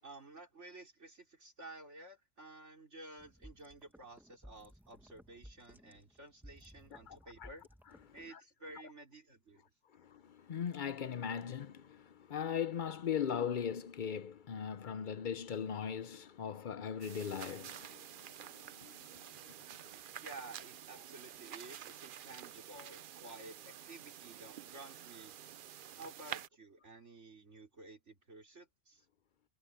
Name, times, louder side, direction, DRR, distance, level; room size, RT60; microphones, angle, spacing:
voice 1, 0.0-7.7 8.1-9.7 20.2-25.3 26.0-29.1, right 2 dB, 70° right, 4.2 m, -53 dB
sound 1, 3.2-8.3, equal, ahead, 1.2 m, -58 dB
voice 2, 6.9-7.5 8.3-8.4 10.0-18.1 18.4-19.0 19.4-19.5, left 8 dB, 50° left, 0.7 m, -39 dB
sound 2, 17.0-26.5, right 10 dB, 55° right, 0.6 m, -49 dB
omnidirectional pair, 1.3 m